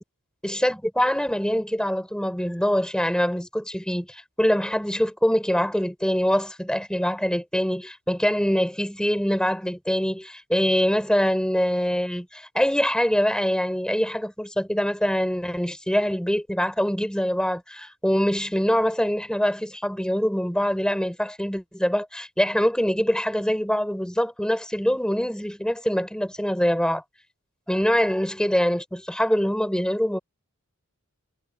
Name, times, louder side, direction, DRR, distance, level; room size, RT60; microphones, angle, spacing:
voice 1, 0.4-27.0 27.7-30.2, equal, 5° left, 4.2 m, -24 dB
head